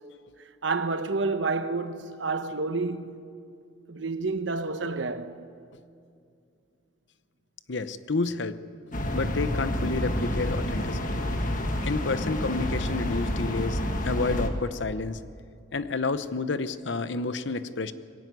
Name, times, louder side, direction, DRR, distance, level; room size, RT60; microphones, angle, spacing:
voice 1, 0.6-3.2 3.9-5.4, right 3 dB, 65° right, 1.0 m, -29 dB
voice 2, 7.7-8.6 9.1-11.3 11.8-15.2 15.7-17.9, left 3 dB, 65° left, 0.8 m, -30 dB
sound 1, 8.9-14.5, left 1 dB, 45° left, 1.6 m, -29 dB
22.0 x 15.5 x 9.4 m
head